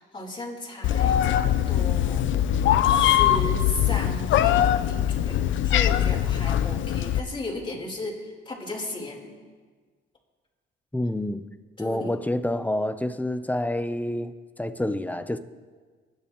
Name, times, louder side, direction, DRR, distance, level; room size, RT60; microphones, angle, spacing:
voice 1, 0.0-2.2 2.8-9.3 11.8-12.1, left 2 dB, 25° left, 4.0 m, -35 dB
Meow, 0.8-7.2, left 11 dB, 75° left, 0.6 m, -22 dB
voice 2, 10.9-11.5 11.8-15.4, left 1 dB, 10° left, 0.7 m, -28 dB
25.0 x 10.5 x 3.1 m
cardioid pair, 90°, 20 cm